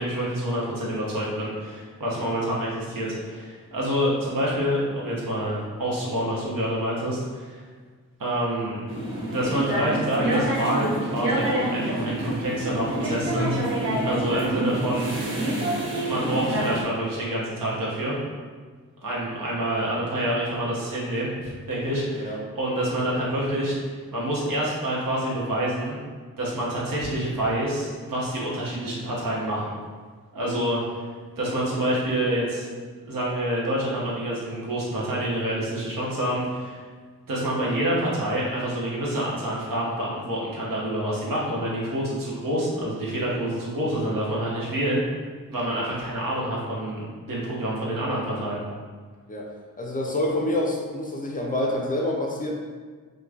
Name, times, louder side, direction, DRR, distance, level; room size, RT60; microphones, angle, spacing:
voice 1, 0.0-7.6 8.2-8.8 9.3-13.6 14.0-15.3 15.9-18.1 19.0-23.8 24.1-25.9 26.4-29.7 30.3-31.0 31.4-32.7 33.0-36.8 37.3-45.0 45.5-48.6, right 1 dB, 60° right, -5 dB, 0.9 m, -27 dB
sound 1, 8.9-16.8, right 1 dB, 35° right, 1.0 m, -27 dB
voice 2, 49.8-52.5, left 1 dB, 25° left, 0 dB, 0.5 m, -27 dB
3.0 x 2.2 x 2.4 m, 1.5 s
cardioid pair, 55°, 37 cm